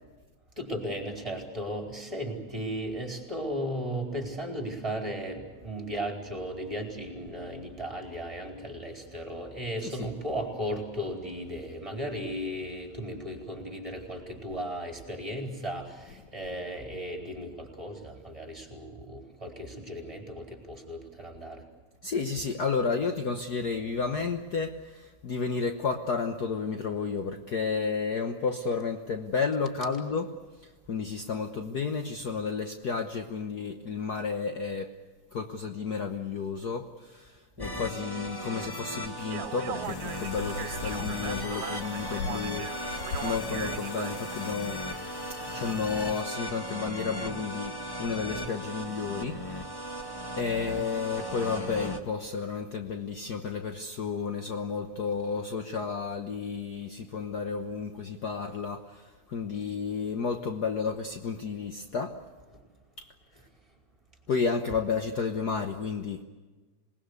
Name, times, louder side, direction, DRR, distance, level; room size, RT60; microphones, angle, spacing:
voice 1, 0.6-21.6 37.6-37.7 40.8-40.9, equal, 10° right, 2 dB, 4.2 m, -36 dB
voice 2, 22.0-30.3 30.6-35.0 35.3-42.7 43.2-44.8 45.4-50.0 50.4-62.2 63.0-63.1 64.3-66.2, left 5 dB, 60° left, 5 dB, 1.0 m, -32 dB
sound 1, 37.6-52.0, equal, 15° left, 0.8 m, -37 dB
Speech, 39.2-44.5, right 12 dB, 80° right, 2.3 m, -40 dB
sound 2, 39.8-46.2, left 5 dB, 80° left, 3.3 m, -41 dB
27.0 x 20.5 x 8.2 m, 1.3 s
omnidirectional pair, 3.4 m